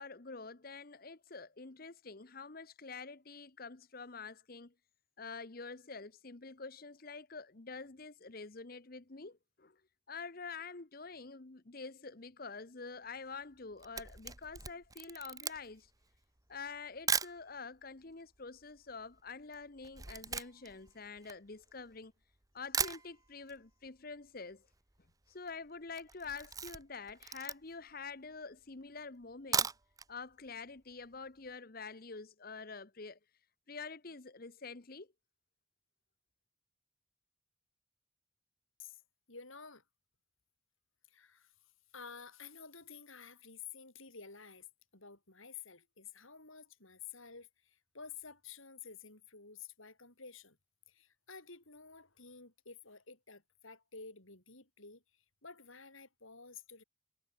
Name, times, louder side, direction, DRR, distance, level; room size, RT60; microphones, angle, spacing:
voice 1, 0.0-4.7 5.2-9.8 10.1-15.9 16.5-22.1 22.5-24.7 25.3-29.7 30.1-33.2 33.7-35.1, left 4 dB, 45° left, 1.0 m, -47 dB
Camera, 13.5-17.4 18.1-18.2 18.4-22.0 22.4-22.5 22.7-23.6 23.9-24.0 24.3-24.4 24.5-25.0 25.3-25.5 25.9-27.9 28.4-28.5 29.3-30.1 30.5-30.6 30.9-31.0, right 6 dB, 15° right, 1.1 m, -38 dB
voice 2, 39.3-39.8 41.1-41.5 41.9-44.7 44.9-50.6 50.9-56.8, left 6 dB, 75° left, 7.1 m, -52 dB
head